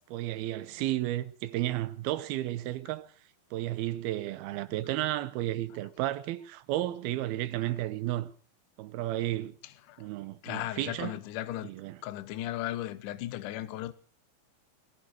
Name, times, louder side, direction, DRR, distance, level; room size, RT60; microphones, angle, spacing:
voice 1, 0.1-3.1 3.5-8.3 8.8-9.6 10.0-11.1 11.6-12.0, right 15 dB, 85° right, 2.8 m, -33 dB
voice 2, 10.4-11.7 12.0-13.9, left 14 dB, 70° left, 2.3 m, -36 dB
20.5 x 11.0 x 6.3 m
omnidirectional pair, 4.3 m